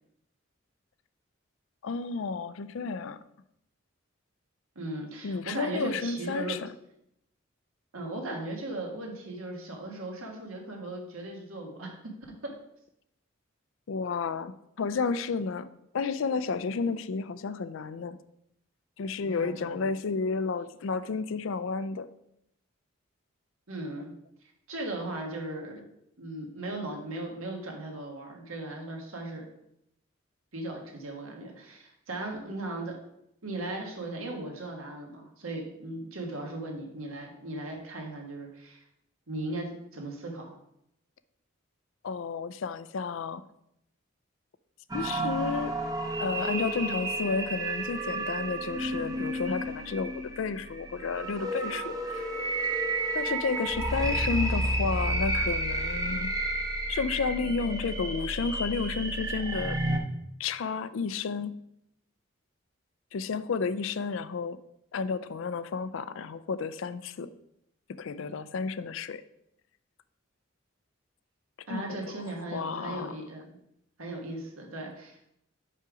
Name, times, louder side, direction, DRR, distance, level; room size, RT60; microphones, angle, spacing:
voice 1, 1.8-3.2 5.2-6.7 13.9-18.2 19.0-22.1 42.0-43.4 44.9-45.7 46.2-52.3 53.1-56.3 56.9-59.8 60.4-61.6 63.1-64.6 64.9-67.3 68.0-69.2 71.7-72.1 72.5-73.1, left 5 dB, 70° left, 12 dB, 0.4 m, -32 dB
voice 2, 4.7-6.6 7.9-12.0 12.4-12.5 19.2-19.9 23.7-24.1 24.7-25.8 26.2-29.5 30.5-33.0 33.4-38.8 39.3-40.5 71.7-73.6 74.0-75.2, right 2 dB, 85° right, 1 dB, 1.5 m, -37 dB
sound 1, 44.9-60.0, right 2 dB, 15° right, 0.7 m, -31 dB
5.5 x 5.2 x 4.8 m, 0.78 s
head